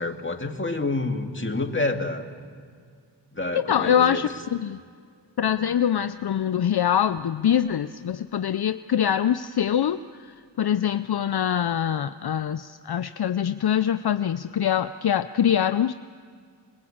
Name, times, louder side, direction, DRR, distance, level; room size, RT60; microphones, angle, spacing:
voice 1, 0.0-2.3 3.3-4.2, left 2 dB, 30° left, 4 dB, 2.0 m, -28 dB
voice 2, 3.5-4.8 5.4-15.9, left 9 dB, 60° left, 11 dB, 0.6 m, -24 dB
27.0 x 20.5 x 8.7 m, 2.1 s
wide cardioid pair, 95°, 43 cm